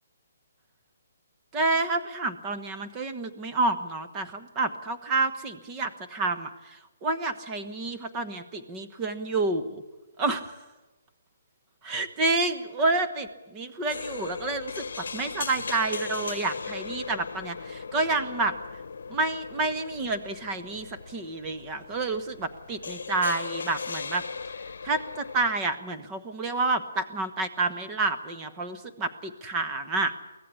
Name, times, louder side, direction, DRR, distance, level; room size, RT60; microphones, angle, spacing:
voice 1, 1.5-9.8 10.2-10.5 11.8-18.6 19.1-24.2 24.8-30.1, right 3 dB, 15° right, 10 dB, 1.2 m, -29 dB
sound 1, 13.9-25.5, left 5 dB, 70° left, 1.0 m, -38 dB
23.5 x 16.5 x 8.4 m, 1.1 s
hypercardioid pair, 170°, 0 cm